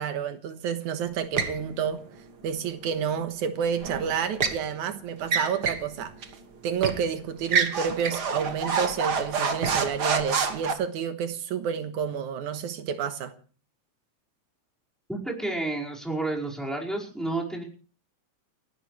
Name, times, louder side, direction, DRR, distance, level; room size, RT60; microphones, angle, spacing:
voice 1, 0.0-2.0 2.4-6.3 6.6-13.3, right 7 dB, 85° right, 2.7 m, -29 dB
sound 1, 1.4-1.6 3.8-4.6 5.2-5.9 6.2-6.3 6.8-7.0 7.4-10.7, right 5 dB, 45° right, 1.6 m, -27 dB
voice 2, 15.1-17.6, right 2 dB, ahead, 4.7 m, -30 dB
29.0 x 12.0 x 3.3 m
omnidirectional pair, 3.4 m